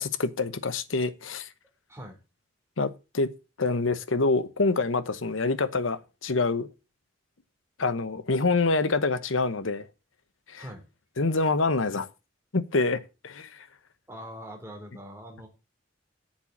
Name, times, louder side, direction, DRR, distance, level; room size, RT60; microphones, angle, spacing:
voice 1, 0.0-1.5 2.8-3.3 3.6-6.7 7.8-9.9 10.5-10.6 11.2-12.1 12.5-13.7, left 3 dB, 85° left, 1.0 m, -26 dB
voice 2, 14.1-15.5, equal, 15° right, 3.6 m, -42 dB
8.7 x 7.4 x 7.4 m
head